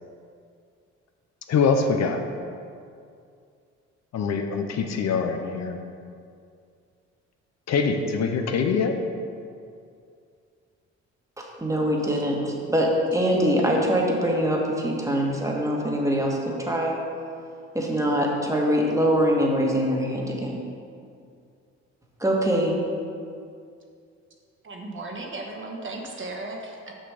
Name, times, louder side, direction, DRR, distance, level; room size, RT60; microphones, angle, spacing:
voice 1, 1.5-2.2 4.1-5.8 7.7-8.9, left 5 dB, 60° left, 6 dB, 0.7 m, -24 dB
voice 2, 11.4-16.9 17.7-20.6 22.2-22.7, equal, 10° right, -1 dB, 1.4 m, -23 dB
voice 3, 24.6-26.9, right 2 dB, 40° right, 1 dB, 1.2 m, -36 dB
6.4 x 6.0 x 4.9 m, 2.3 s
cardioid pair, 90°, 30 cm